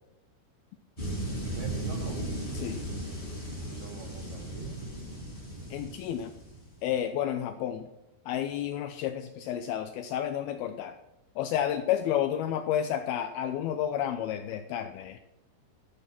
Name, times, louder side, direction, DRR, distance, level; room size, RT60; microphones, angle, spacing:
sound 1, 1.0-6.9, right 1 dB, 10° left, 6.2 m, -36 dB
voice 1, 1.3-2.3 3.6-4.9, right 6 dB, 70° right, 4 dB, 1.7 m, -42 dB
voice 2, 5.7-6.3 6.8-7.9 8.3-10.9 11.4-15.2, left 10 dB, 80° left, 9 dB, 2.3 m, -31 dB
13.5 x 9.6 x 6.0 m, 0.91 s
omnidirectional pair, 4.9 m